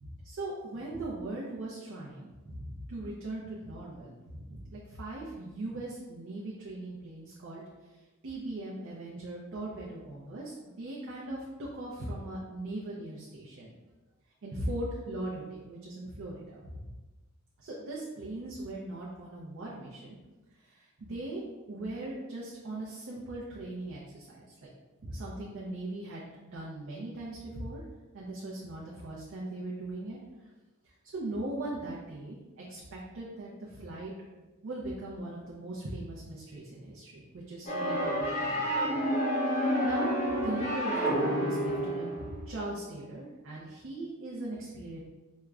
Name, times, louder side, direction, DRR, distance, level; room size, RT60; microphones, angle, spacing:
voice 1, 0.0-7.6 8.2-13.7 14.4-16.9 17.6-20.2 20.6-24.7 25.0-26.2 26.5-27.8 28.1-30.2 31.1-32.4 32.7-34.1 34.6-39.0 39.4-40.1 40.4-45.0, right 2 dB, 65° right, -5 dB, 0.5 m, -39 dB
sound 1, 37.7-42.4, equal, 35° left, 0.8 m, -29 dB
4.5 x 2.1 x 2.4 m, 1.2 s
head